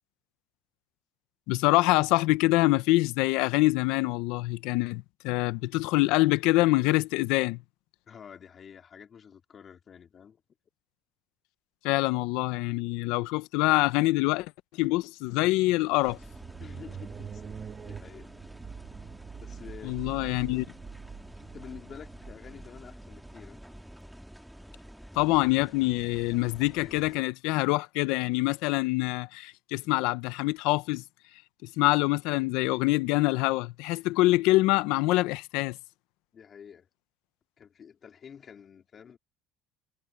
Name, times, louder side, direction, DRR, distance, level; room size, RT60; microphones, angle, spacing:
voice 1, 1.5-7.6 11.8-14.5 14.8-16.2 19.8-20.7 25.1-31.0 31.6-35.8, left 20 dB, 80° left, 0.9 m, -25 dB
voice 2, 8.1-10.4 16.6-17.4 17.8-18.3 19.4-20.0 21.5-23.6 36.3-36.9 37.6-39.2, left 7 dB, 40° left, 3.6 m, -48 dB
sound 1, 15.5-23.9, right 7 dB, 35° right, 1.2 m, -45 dB
sound 2, 16.0-27.2, equal, ahead, 2.2 m, -48 dB
supercardioid pair, 110°, 0 cm